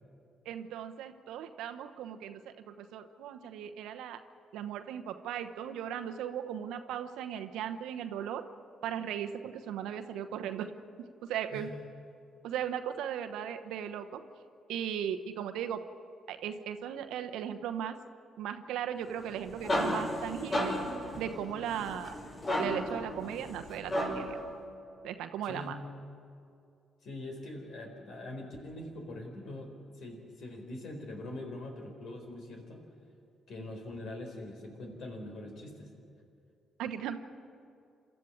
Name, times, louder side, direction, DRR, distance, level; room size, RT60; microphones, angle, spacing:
voice 1, 0.4-4.2 4.5-8.5 8.8-11.7 12.4-14.2 14.7-15.8 16.3-18.0 18.4-20.8 21.2-22.1 22.6-24.4 25.0-25.8 36.8-37.2, right 9 dB, 75° right, 8 dB, 1.0 m, -37 dB
sound 1, 19.2-24.4, equal, 45° left, 5.5 m, -34 dB
voice 2, 25.4-25.8 27.0-32.9 33.5-35.9, left 1 dB, 65° left, 3 dB, 4.2 m, -43 dB
27.5 x 13.0 x 8.7 m, 2.5 s
hypercardioid pair, 45°, 0 cm